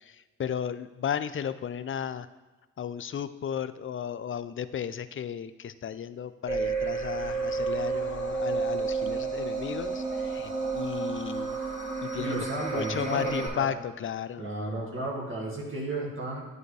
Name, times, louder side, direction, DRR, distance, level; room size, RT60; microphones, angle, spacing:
voice 1, 0.0-2.3 2.8-11.6 12.0-12.4 12.7-14.5, left 8 dB, 40° left, 13 dB, 0.5 m, -34 dB
sound 1, 6.5-13.5, right 4 dB, 20° right, 2.4 m, -31 dB
voice 2, 12.2-13.7 14.4-16.4, right 2 dB, 40° right, -4 dB, 1.9 m, -33 dB
10.0 x 4.5 x 3.3 m, 1.2 s
supercardioid pair, 45°, 33 cm